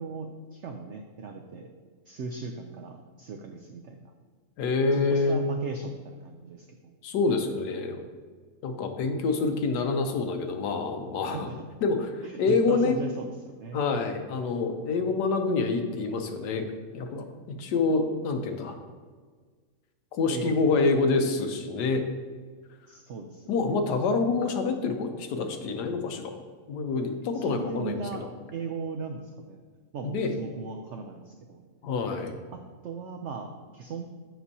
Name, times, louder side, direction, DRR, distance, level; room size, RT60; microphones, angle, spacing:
voice 1, 0.0-1.7 2.1-4.1 4.9-6.9 11.3-11.6 12.2-13.8 20.3-20.8 22.9-23.8 27.3-29.6 29.9-31.6 32.5-34.1, right 4 dB, 90° right, 4 dB, 0.6 m, -38 dB
voice 2, 4.6-5.6 7.0-8.0 8.6-11.5 11.8-12.9 13.7-18.8 20.1-22.1 23.5-26.3 26.7-28.3 30.1-30.3 31.8-32.3, left 4 dB, 80° left, 6 dB, 1.3 m, -27 dB
7.8 x 6.0 x 2.7 m, 1.5 s
omnidirectional pair, 1.8 m